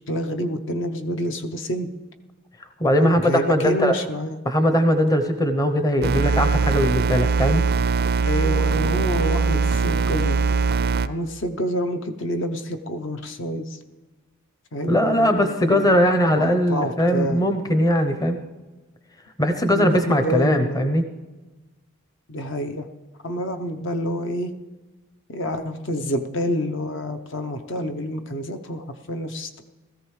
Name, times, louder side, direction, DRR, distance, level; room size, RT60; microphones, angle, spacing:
voice 1, 0.1-1.9 3.0-4.4 8.3-10.4 11.0-13.7 14.7-16.0 16.3-17.4 19.7-20.9 22.3-22.9 23.2-24.5 25.3-29.6, equal, 60° left, 6 dB, 0.8 m, -28 dB
voice 2, 2.8-3.9 4.4-7.6 14.9-18.4 19.4-21.0, equal, 15° left, 7 dB, 0.7 m, -20 dB
sound 1, 6.0-11.1, right 4 dB, 45° right, 0.4 m, -21 dB
17.0 x 14.0 x 3.2 m, 1.2 s
head